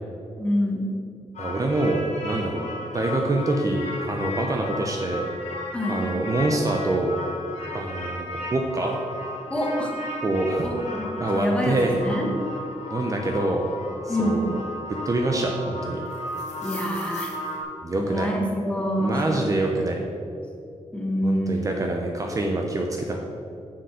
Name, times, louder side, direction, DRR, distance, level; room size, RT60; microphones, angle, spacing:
voice 1, 0.4-0.9 5.7-6.1 9.5-10.0 10.6-12.3 14.1-14.5 16.6-17.4 17.9-19.4 20.9-21.7, equal, 10° left, 0 dB, 1.3 m, -26 dB
sound 1, 1.3-17.6, left 2 dB, 75° left, 2.0 m, -35 dB
voice 2, 1.4-2.7 2.9-5.3 5.9-7.2 7.7-8.9 10.2-10.7 11.2-12.0 12.9-13.7 14.0-14.6 15.1-16.0 17.8-18.3 19.0-20.0 21.2-23.2, right 2 dB, 30° right, 1 dB, 0.7 m, -25 dB
7.6 x 6.9 x 6.4 m, 2.6 s
wide cardioid pair, 175°, 12 cm